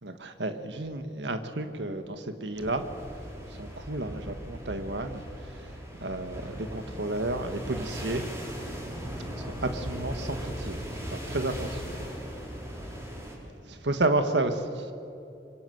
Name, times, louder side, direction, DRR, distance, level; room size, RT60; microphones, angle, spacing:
voice 1, 0.0-2.9 3.5-5.7 6.0-8.3 9.4-12.1 13.6-14.9, right 2 dB, 90° right, 8 dB, 1.6 m, -32 dB
sound 1, 2.6-13.3, equal, 15° right, 5.4 m, -38 dB
25.5 x 24.0 x 8.0 m, 2.7 s
head